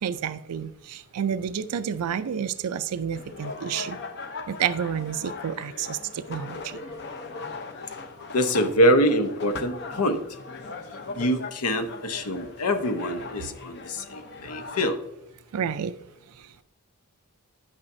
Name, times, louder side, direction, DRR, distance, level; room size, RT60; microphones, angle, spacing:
voice 1, 0.0-4.0 4.5-6.8 15.5-15.9 16.4-16.6, right 8 dB, 80° right, 12 dB, 0.4 m, -30 dB
sound 1, 3.1-14.9, left 3 dB, 50° left, 0.8 m, -39 dB
voice 2, 8.3-10.2 11.1-15.0, equal, 80° left, 8 dB, 0.9 m, -24 dB
10.0 x 8.7 x 2.6 m, 0.84 s
head